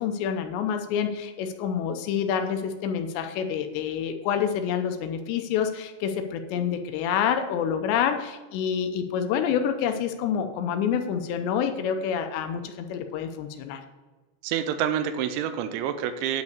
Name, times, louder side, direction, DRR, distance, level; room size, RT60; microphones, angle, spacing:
voice 1, 0.0-13.8, left 8 dB, 80° left, 6 dB, 2.8 m, -27 dB
voice 2, 14.4-16.4, right 9 dB, 85° right, 9 dB, 3.1 m, -27 dB
9.4 x 5.5 x 6.6 m, 1.2 s
omnidirectional pair, 5.3 m